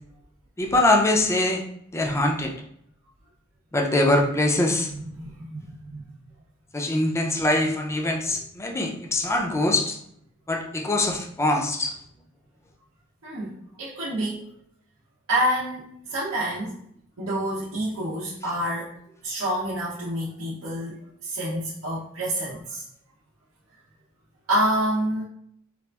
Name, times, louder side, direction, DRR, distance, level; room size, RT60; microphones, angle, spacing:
voice 1, 0.6-1.6 1.9-2.5 3.7-4.9 6.7-10.0 10.5-11.9, left 1 dB, 15° left, 1 dB, 0.4 m, -23 dB
voice 2, 4.9-6.1 13.2-14.4 15.3-16.7 17.2-18.9 19.2-22.8 24.5-25.2, right 1 dB, 85° right, -7 dB, 0.6 m, -28 dB
4.0 x 2.4 x 2.2 m, 0.70 s
head